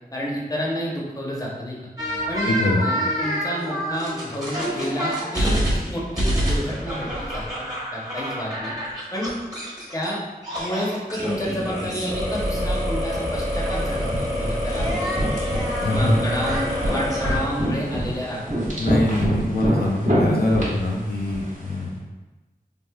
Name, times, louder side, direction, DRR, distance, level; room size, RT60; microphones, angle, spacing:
voice 1, 0.1-1.8 2.3-2.5 2.8-7.5 7.9-8.7 9.1-9.3 9.9-10.2 10.6-15.2 15.9-18.6, equal, 20° left, -4 dB, 0.7 m, -29 dB
sound 1, 2.0-10.1 10.4-17.4, equal, 20° right, 1.0 m, -27 dB
voice 2, 2.5-2.8 15.8-16.2 18.8-21.9, left 1 dB, 75° left, -2 dB, 0.4 m, -23 dB
sound 2, 13.6-21.8, equal, 50° right, 1.0 m, -27 dB
3.3 x 2.4 x 2.3 m, 1.1 s
wide cardioid pair, 70°, 16 cm